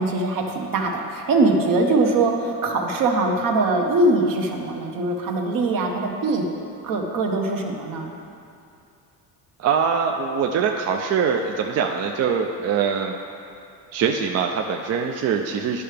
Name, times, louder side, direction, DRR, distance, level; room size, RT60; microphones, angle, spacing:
voice 1, 0.0-6.5 6.8-8.1, right 2 dB, 60° right, 2 dB, 1.0 m, -22 dB
voice 2, 9.6-13.2 13.9-15.8, right 6 dB, 45° right, 2 dB, 0.4 m, -23 dB
11.0 x 5.6 x 3.4 m, 2.5 s
cardioid pair, 125°, 37 cm